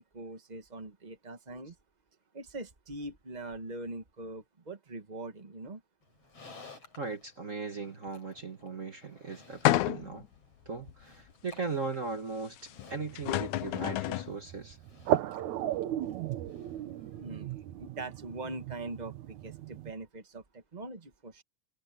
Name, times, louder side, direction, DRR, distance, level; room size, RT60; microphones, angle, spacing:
voice 1, 0.0-1.7 2.3-5.8 17.2-21.4, right 2 dB, 55° right, 0.4 m, -42 dB
Livestock farm animals working animals, 6.0-17.3, left 3 dB, 50° left, 7.9 m, -57 dB
voice 2, 7.0-10.3 10.6-14.8, right 4 dB, 35° right, 1.5 m, -38 dB
sound 1, 9.7-10.3 10.9-11.0 12.8-12.9 13.2-14.3, left 15 dB, 80° left, 2.2 m, -29 dB
sound 2, 12.9-19.9, right 12 dB, 75° right, 2.3 m, -36 dB
omnidirectional pair, 3.5 m